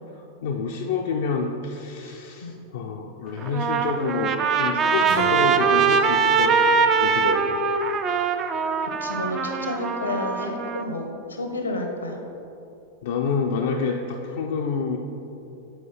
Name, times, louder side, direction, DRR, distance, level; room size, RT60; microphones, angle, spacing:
voice 1, 0.4-7.6 13.0-15.0, left 5 dB, 55° left, 1 dB, 0.4 m, -28 dB
Trumpet, 3.4-10.8, right 5 dB, 30° right, 0.4 m, -22 dB
Acoustic guitar, 5.1-10.0, right 1 dB, 55° right, 1.1 m, -37 dB
voice 2, 9.0-12.2, left 2 dB, 75° left, 3 dB, 0.8 m, -30 dB
7.9 x 4.5 x 4.1 m, 2.9 s
figure-of-eight pair, 90°, 0 cm